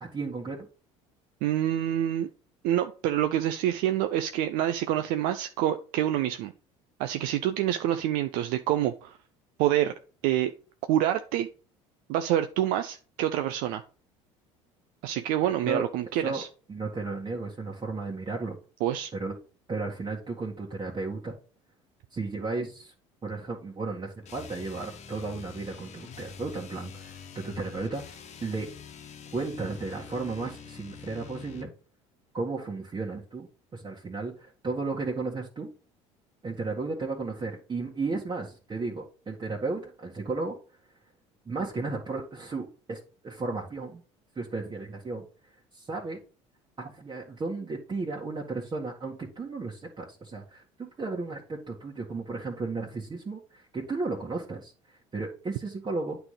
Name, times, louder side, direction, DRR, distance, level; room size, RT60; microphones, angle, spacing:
voice 1, 0.0-0.6 15.7-15.8 16.2-16.4 16.7-18.6 19.1-19.3 19.7-21.4 22.1-22.9 23.2-28.7 29.3-31.7 32.3-35.7 36.4-40.5 41.5-44.0 44.4-45.3 45.7-46.2 46.8-54.7 55.1-56.2, right 3 dB, 30° right, -3 dB, 1.8 m, -34 dB
voice 2, 1.4-2.3 2.6-6.5 7.0-9.2 9.6-9.9 10.2-10.5 10.9-11.5 12.1-13.8 15.0-16.5 18.8-19.1, right 12 dB, 65° right, 8 dB, 0.6 m, -27 dB
sound 1, 24.2-31.8, left 7 dB, 45° left, 1.2 m, -45 dB
8.8 x 3.4 x 5.7 m, 0.36 s
hypercardioid pair, 75°, 16 cm